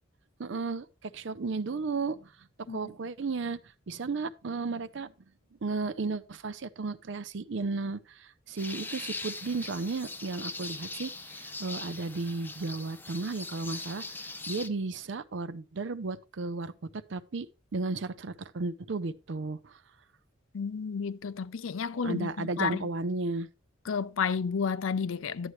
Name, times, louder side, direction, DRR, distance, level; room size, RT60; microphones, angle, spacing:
voice 1, 0.4-2.3 2.7-3.6 3.9-5.1 5.6-17.5 17.7-19.8 22.0-23.5, right 3 dB, 60° right, 0.5 m, -34 dB
sound 1, 8.6-14.7, left 3 dB, 10° left, 0.5 m, -41 dB
voice 2, 20.5-22.9 23.9-25.5, left 6 dB, 80° left, 0.5 m, -31 dB
11.0 x 7.9 x 3.1 m
head